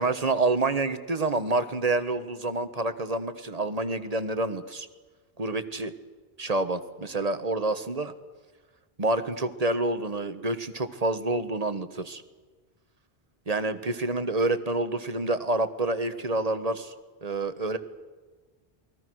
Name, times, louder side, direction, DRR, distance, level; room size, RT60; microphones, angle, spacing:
voice 1, 0.0-4.9 5.4-5.9 6.4-8.1 9.0-12.2 13.5-16.9 17.2-17.8, right 2 dB, 40° right, 11 dB, 1.3 m, -28 dB
28.5 x 21.0 x 6.3 m, 1.4 s
omnidirectional pair, 1.1 m